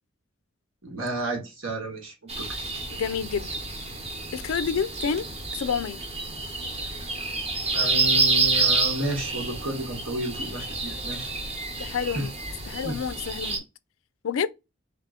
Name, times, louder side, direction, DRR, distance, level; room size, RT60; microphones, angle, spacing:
voice 1, 0.8-2.5 7.7-11.3 12.1-12.2 12.8-13.0, right 1 dB, 80° right, 1.5 m, -32 dB
sound 1, 2.3-13.6, right 3 dB, 30° right, 1.0 m, -28 dB
voice 2, 2.9-3.5 4.3-5.3 5.5-6.0 11.8-12.3 12.7-13.6 14.2-14.5, left 6 dB, 90° left, 0.4 m, -28 dB
3.5 x 2.9 x 3.6 m
head